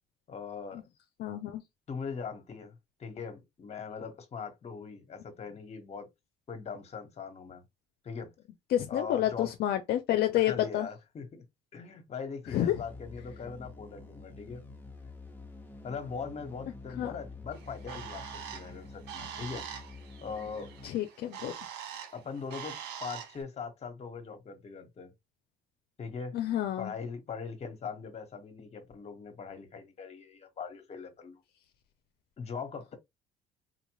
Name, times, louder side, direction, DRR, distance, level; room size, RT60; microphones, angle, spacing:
voice 1, 0.3-0.8 1.9-6.1 6.5-7.6 8.0-8.3 8.9-9.5 10.4-11.4 11.7-14.6 15.8-19.7 20.2-20.7 22.1-25.1 26.0-26.4 26.8-31.4 32.4-33.0, left 5 dB, 40° left, 1.3 m, -41 dB
voice 2, 1.2-1.6 8.7-10.9 12.5-12.7 17.0-17.1 20.8-21.5 26.3-26.9, left 12 dB, 70° left, 0.6 m, -29 dB
sound 1, 12.5-20.9, left 3 dB, 10° left, 1.1 m, -48 dB
Bird, 17.5-23.4, right 9 dB, 85° right, 1.2 m, -44 dB
4.3 x 2.5 x 3.1 m
cardioid pair, 110°, 17 cm